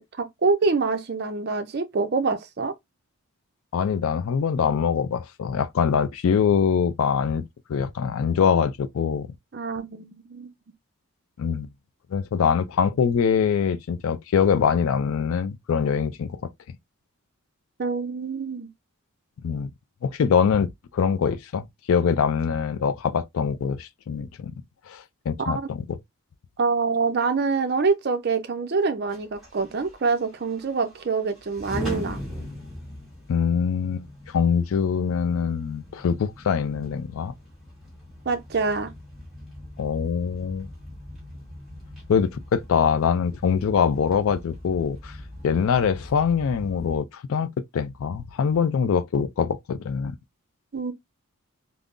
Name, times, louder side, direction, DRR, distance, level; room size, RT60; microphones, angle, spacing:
voice 1, 0.0-2.7 9.5-10.5 17.8-18.7 25.4-25.7 26.6-32.2 38.3-38.9 50.7-50.9, right 4 dB, 45° right, 0.4 m, -25 dB
voice 2, 3.7-7.4 7.7-9.3 11.4-11.7 12.1-16.5 19.4-19.7 20.0-24.5 24.9-26.0 33.3-37.3 39.8-40.7 42.1-45.2 45.4-47.5 47.7-50.2, left 6 dB, 70° left, 0.3 m, -23 dB
sound 1, 29.1-47.0, left 1 dB, ahead, 1.3 m, -41 dB
3.6 x 2.0 x 2.4 m
head